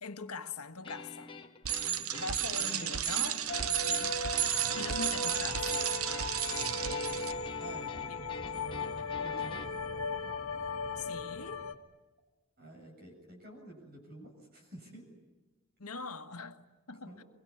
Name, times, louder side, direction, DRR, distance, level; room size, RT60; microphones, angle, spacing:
voice 1, 0.0-1.3 2.1-3.5 4.7-5.7 8.1-8.2 11.0-11.6 15.8-17.2, left 4 dB, 90° left, 1.5 m, -42 dB
sound 1, 0.8-9.6, left 4 dB, 25° left, 1.5 m, -48 dB
Bicycle, 1.6-7.3, right 10 dB, 75° right, 0.8 m, -33 dB
voice 2, 1.7-2.7 3.9-4.2 6.5-7.2 7.6-9.6 12.6-15.1 17.1-17.3, right 1 dB, 45° right, 7.2 m, -51 dB
sound 2, 3.5-11.7, left 3 dB, 65° left, 1.9 m, -37 dB
23.5 x 23.5 x 9.8 m
head